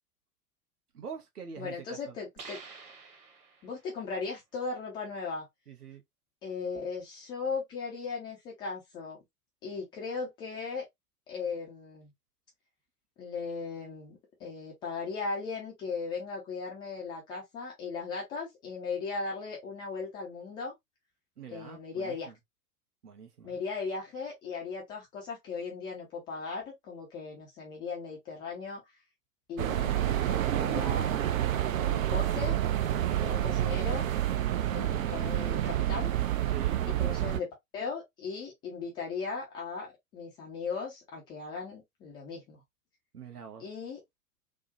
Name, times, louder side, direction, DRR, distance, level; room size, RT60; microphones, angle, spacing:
voice 1, 0.9-2.2 5.7-6.0 21.4-22.3 23.0-23.6 36.5-36.8 43.1-43.6, right 7 dB, 80° right, 1.0 m, -45 dB
voice 2, 1.6-2.6 3.6-5.4 6.4-9.2 9.6-10.8 11.3-12.1 13.2-20.7 21.5-22.3 23.4-28.8 29.5-31.4 31.8-32.6 33.2-34.1 34.7-36.2 37.0-39.9 40.1-42.6 43.6-44.0, left 4 dB, 10° left, 0.3 m, -37 dB
sound 1, 2.4-3.9, right 4 dB, 35° right, 1.2 m, -48 dB
sound 2, 29.6-37.4, right 12 dB, 60° right, 0.5 m, -28 dB
3.6 x 2.1 x 2.6 m
figure-of-eight pair, 95°, 45 cm